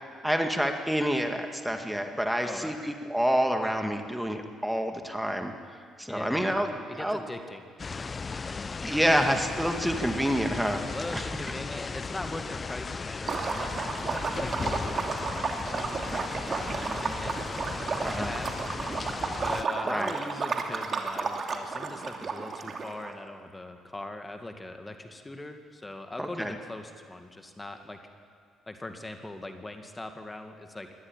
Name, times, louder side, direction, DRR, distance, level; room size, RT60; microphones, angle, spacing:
voice 1, 0.2-5.5 6.0-7.3 8.4-10.9 11.1-11.2 18.0-18.3 19.8-20.2 26.2-26.5, equal, 5° right, 5 dB, 2.2 m, -28 dB
voice 2, 2.4-2.9 6.1-7.7 10.9-17.4 18.0-18.5 19.4-28.0 28.7-30.9, left 2 dB, 20° left, 6 dB, 2.2 m, -41 dB
sound 1, 7.8-19.6, left 4 dB, 35° left, 0.6 m, -36 dB
Liquid, 13.2-23.1, right 4 dB, 40° right, 2.8 m, -33 dB
24.0 x 18.5 x 9.0 m, 2.2 s
figure-of-eight pair, 45°, 0 cm